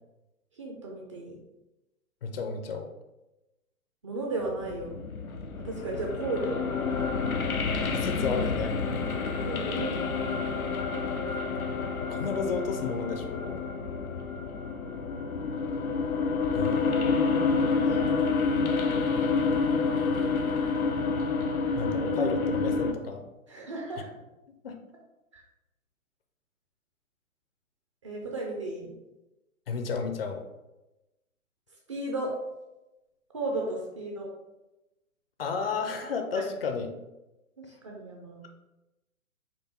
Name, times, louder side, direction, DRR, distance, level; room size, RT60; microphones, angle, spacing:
voice 1, 0.6-1.4 4.0-4.9 5.6-6.7 9.4-10.5 17.7-17.9 20.2-20.5 23.5-24.1 25.3-25.4 28.0-28.9 31.9-32.3 33.3-34.3 37.6-38.4, right 2 dB, 25° right, -1 dB, 0.4 m, -34 dB
voice 2, 2.2-2.9 7.9-8.8 12.1-13.6 16.5-17.6 21.8-23.2 24.6-24.8 29.7-30.4 35.4-36.9, left 5 dB, 45° left, 5 dB, 0.5 m, -32 dB
sound 1, 4.4-22.9, left 4 dB, 90° left, 0.6 m, -28 dB
4.5 x 2.5 x 4.2 m, 0.98 s
figure-of-eight pair, 125°, 42 cm